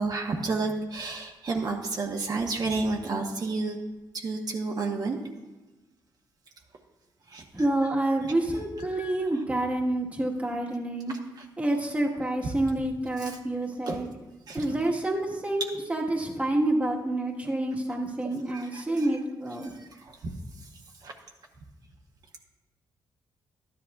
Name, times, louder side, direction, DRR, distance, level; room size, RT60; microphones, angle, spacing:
voice 1, 0.0-3.8 4.1-5.2 7.3-7.4 8.9-9.1 13.2-13.4 13.9-14.0 14.5-14.7 18.5-18.8 19.6-20.3 21.0-21.1, right 3 dB, 50° right, 0 dB, 1.1 m, -31 dB
voice 2, 7.5-11.1 11.6-14.1 14.5-19.7, right 1 dB, 15° right, -2 dB, 1.5 m, -28 dB
12.5 x 10.5 x 2.4 m, 1.1 s
cardioid pair, 95°, 9 cm